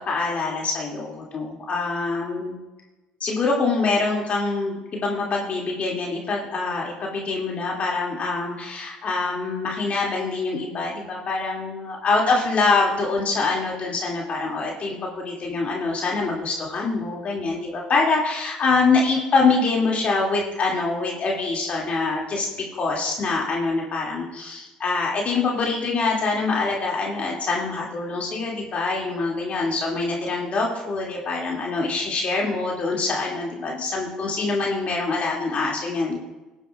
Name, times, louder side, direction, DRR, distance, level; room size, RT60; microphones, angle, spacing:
voice 1, 0.0-2.5 3.2-36.2, left 3 dB, 45° left, -2 dB, 2.5 m, -25 dB
18.5 x 7.9 x 2.4 m, 1.1 s
hypercardioid pair, 65°, 3 cm